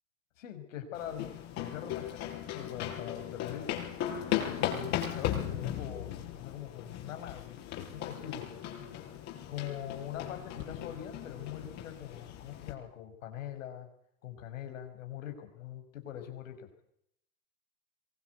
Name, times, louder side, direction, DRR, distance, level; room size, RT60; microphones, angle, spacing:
voice 1, 0.4-3.7 4.5-7.6 7.9-8.5 9.5-13.9 14.2-16.7, left 10 dB, 75° left, 7 dB, 5.6 m, -43 dB
sound 1, 0.9-12.7, left 11 dB, 40° left, 5.8 m, -37 dB
23.5 x 19.0 x 8.2 m, 0.73 s
hypercardioid pair, 120°, 39 cm